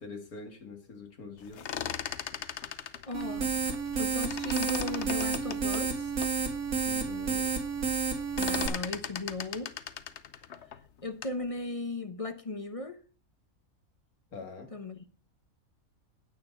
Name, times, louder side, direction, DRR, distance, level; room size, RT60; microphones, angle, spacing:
voice 1, 0.0-1.6 6.8-7.5 14.3-14.7, left 4 dB, 80° left, 2.5 m, -44 dB
sound 1, 1.4-4.0 4.2-6.4 6.9-7.0 7.2-7.6 7.9-11.4, left 8 dB, 55° left, 1.0 m, -38 dB
voice 2, 3.1-3.6 4.0-6.2 8.4-9.7 11.0-13.0 14.7-15.0, left 2 dB, 30° left, 0.8 m, -37 dB
sound 2, 3.1-8.7, right 6 dB, 75° right, 2.3 m, -31 dB
9.5 x 9.1 x 5.4 m
omnidirectional pair, 1.5 m